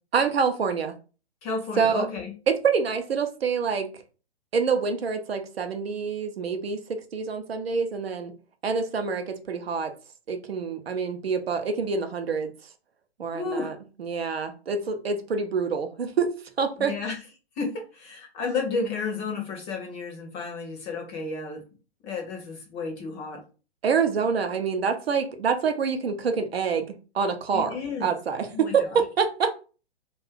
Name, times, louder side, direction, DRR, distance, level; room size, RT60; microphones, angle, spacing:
voice 1, 0.1-0.9 1.8-2.1 2.5-3.9 4.5-8.3 8.6-9.9 10.3-12.5 13.2-16.3 16.6-16.9 23.8-27.7 28.0-29.5, right 5 dB, 65° right, 6 dB, 0.6 m, -26 dB
voice 2, 1.4-2.3 13.3-13.7 16.8-17.2 17.6-21.6 22.0-23.4 27.5-28.1 28.5-28.7, left 4 dB, 20° left, 2 dB, 0.6 m, -32 dB
2.4 x 2.3 x 3.5 m, 0.35 s
figure-of-eight pair, 115°, 33 cm